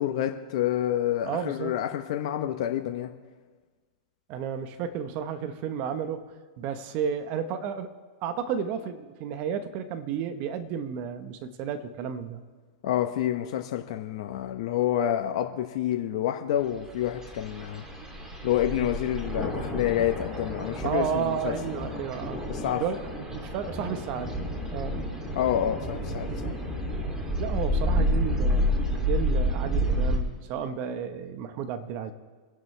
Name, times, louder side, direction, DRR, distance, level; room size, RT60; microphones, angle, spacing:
voice 1, 0.0-3.1 12.8-17.8 18.4-21.5 22.5-22.8 25.3-26.5, left 11 dB, 60° left, 4 dB, 1.1 m, -28 dB
voice 2, 1.2-1.7 4.3-6.3 6.6-7.9 8.2-12.4 20.8-22.4 22.8-24.4 24.7-25.0 27.4-28.7 29.1-32.1, right 8 dB, 45° right, 9 dB, 1.2 m, -32 dB
sound 1, 16.8-30.2, equal, 15° right, 3.0 m, -30 dB
26.0 x 11.0 x 3.4 m, 1.4 s
hypercardioid pair, 115°, 4 cm